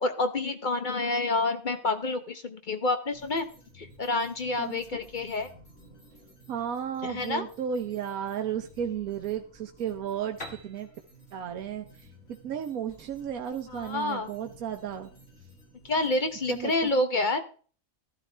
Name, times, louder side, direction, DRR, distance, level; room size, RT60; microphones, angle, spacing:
voice 1, 0.0-3.5 3.8-5.5 7.0-7.4 13.7-14.3 15.9-17.4, left 2 dB, 40° left, 8 dB, 0.9 m, -28 dB
sound 1, 3.1-16.9, right 1 dB, 80° left, 6.1 m, -55 dB
voice 2, 4.6-5.0 6.5-10.9 11.3-15.1 16.5-16.9, right 8 dB, 90° right, 5 dB, 1.3 m, -34 dB
Piano, 10.4-14.1, left 2 dB, 60° left, 2.1 m, -48 dB
13.5 x 12.0 x 3.3 m, 0.41 s
omnidirectional pair, 1.4 m